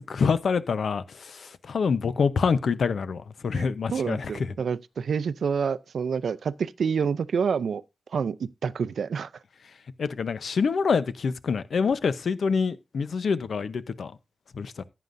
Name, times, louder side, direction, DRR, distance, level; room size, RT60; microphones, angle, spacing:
voice 1, 0.1-4.5 10.0-14.1 14.5-14.8, left 5 dB, 75° left, 0.7 m, -26 dB
voice 2, 3.5-7.8 8.1-9.3, right 6 dB, 85° right, 0.5 m, -28 dB
14.5 x 9.4 x 2.6 m
cardioid pair, 65°, 0 cm